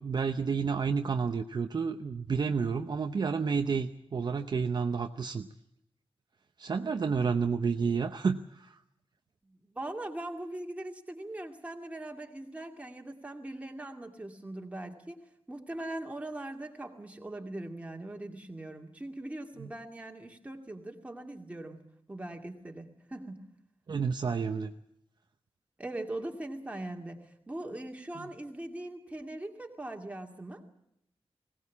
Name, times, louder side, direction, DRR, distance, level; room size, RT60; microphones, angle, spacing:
voice 1, 0.0-5.5 6.6-8.7 19.6-19.7 23.9-24.7, right 5 dB, 45° right, 6 dB, 0.8 m, -30 dB
voice 2, 6.8-7.2 9.4-15.2 15.5-21.8 22.1-23.4 25.8-30.6, right 1 dB, 15° right, 2 dB, 2.4 m, -41 dB
21.0 x 18.0 x 8.4 m, 0.79 s
wide cardioid pair, 170°, 10 cm